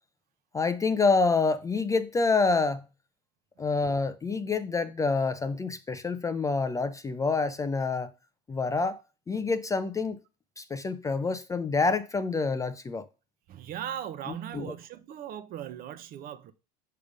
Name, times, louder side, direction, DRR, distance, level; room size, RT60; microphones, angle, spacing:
voice 1, 0.5-2.8 3.6-8.1 8.5-9.0 9.3-10.2 10.6-13.1 14.3-14.7, left 4 dB, 15° left, 0.4 m, -27 dB
voice 2, 13.5-16.5, right 10 dB, 45° right, 0.8 m, -38 dB
6.7 x 3.6 x 4.9 m
supercardioid pair, 105°, 21 cm